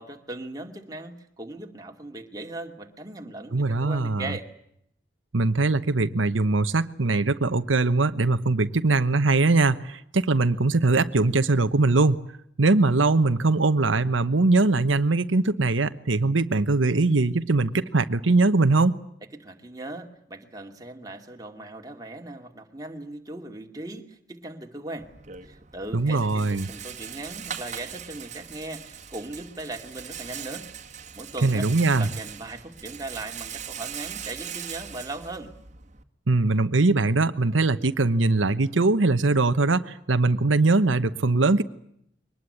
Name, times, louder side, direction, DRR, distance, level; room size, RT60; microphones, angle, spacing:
voice 1, 0.0-4.5 19.4-25.1 25.4-30.7 31.2-35.5, right 2 dB, 20° right, 3 dB, 2.4 m, -38 dB
voice 2, 3.5-4.3 5.3-12.2 12.6-19.0 25.9-26.7 31.4-32.1 36.3-41.6, right 3 dB, 90° right, 10 dB, 1.0 m, -21 dB
Rattle, 25.0-36.0, right 8 dB, 40° right, 1.9 m, -40 dB
23.5 x 20.0 x 9.8 m, 0.73 s
head